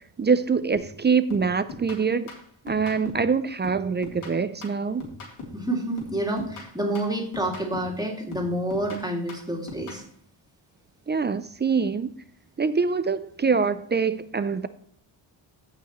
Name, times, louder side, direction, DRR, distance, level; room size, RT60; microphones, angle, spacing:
voice 1, 0.2-2.3 2.6-5.1 11.1-12.1 12.6-14.7, right 5 dB, 25° right, 0.4 m, -24 dB
sound 1, 0.7-1.0 1.3-3.3 3.6-5.7 6.0-8.0 8.3-10.1, left 3 dB, 85° left, 3.4 m, -41 dB
voice 2, 5.5-10.0, right 1 dB, 10° right, 2.4 m, -28 dB
15.5 x 5.9 x 3.1 m
cardioid pair, 120°, 49 cm